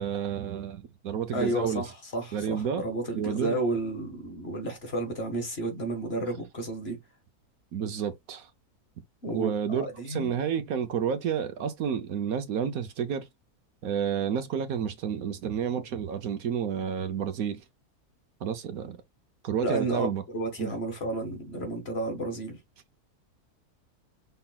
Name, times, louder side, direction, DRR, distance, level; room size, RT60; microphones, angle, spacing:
voice 1, 0.0-1.8 2.3-2.8 3.2-3.6 7.7-8.5 9.3-13.3 13.8-17.6 18.4-19.0 19.4-20.2 20.6-20.7, right 8 dB, 65° right, 1.2 m, -30 dB
voice 2, 1.3-7.0 9.2-10.3 19.6-22.6, right 2 dB, 40° left, 1.8 m, -32 dB
5.6 x 3.9 x 2.3 m
omnidirectional pair, 1.7 m